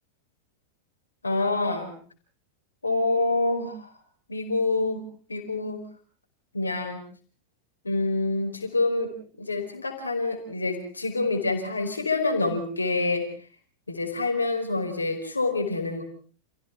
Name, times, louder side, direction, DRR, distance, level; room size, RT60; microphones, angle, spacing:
voice 1, 1.2-1.9 2.8-3.9 4.3-5.0 5.3-5.8 6.5-7.0 7.8-9.1 9.4-13.2 13.9-16.0, left 3 dB, 80° left, 4 dB, 4.9 m, -26 dB
29.0 x 16.0 x 5.9 m, 0.43 s
figure-of-eight pair, 90°, 0 cm